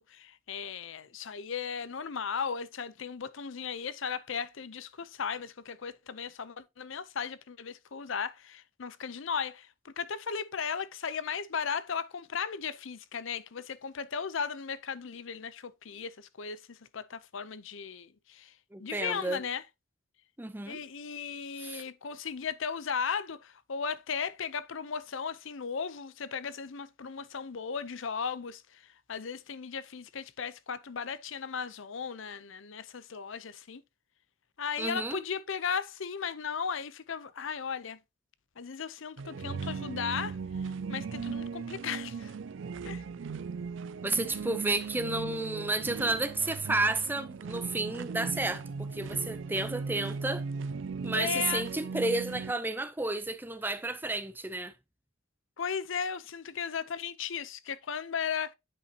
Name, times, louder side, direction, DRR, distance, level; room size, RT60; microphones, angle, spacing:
voice 1, 0.0-18.5 18.8-19.6 20.7-33.8 34.6-38.0 38.6-40.4 40.9-42.3 42.8-43.0 51.1-51.6 55.6-58.5, left 6 dB, 70° left, 0.6 m, -36 dB
voice 2, 18.7-19.4 20.4-20.8 21.6-21.8 34.8-35.2 44.0-50.4 51.0-54.7, right 2 dB, 10° right, 0.5 m, -31 dB
sound 1, 39.2-52.5, right 5 dB, 65° right, 0.4 m, -38 dB
9.6 x 5.5 x 2.8 m
head